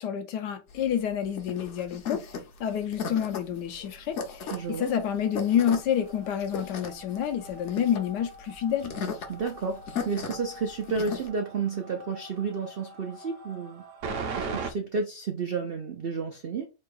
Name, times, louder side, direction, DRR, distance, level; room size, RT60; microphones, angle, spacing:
voice 1, 0.0-2.2 2.6-8.9, left 9 dB, 75° left, 1.2 m, -28 dB
sound 1, 0.7-11.3, left 5 dB, 55° left, 0.8 m, -37 dB
sound 2, 4.5-14.7, right 4 dB, 60° right, 0.9 m, -41 dB
voice 2, 4.5-4.9 9.3-13.8 14.4-16.7, right 5 dB, 85° right, 0.5 m, -31 dB
4.4 x 2.2 x 4.6 m
omnidirectional pair, 1.9 m